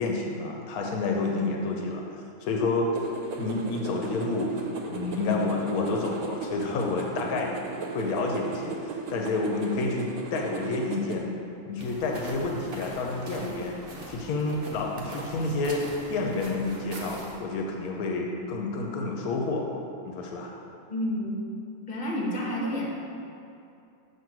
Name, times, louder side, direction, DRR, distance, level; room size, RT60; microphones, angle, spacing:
voice 1, 0.0-2.0 2.4-3.0 3.4-7.7 7.9-8.8 9.1-11.3 11.7-13.7 14.1-19.7 20.0-20.5, left 3 dB, 85° left, 1 dB, 1.1 m, -29 dB
sound 1, 2.9-11.2, right 4 dB, 85° right, 1.1 m, -37 dB
sound 2, 11.8-17.4, right 1 dB, 50° right, 0.9 m, -42 dB
voice 2, 20.9-21.4 21.9-22.8, equal, 40° left, -4 dB, 1.3 m, -29 dB
7.5 x 2.9 x 5.9 m, 2.6 s
omnidirectional pair, 1.5 m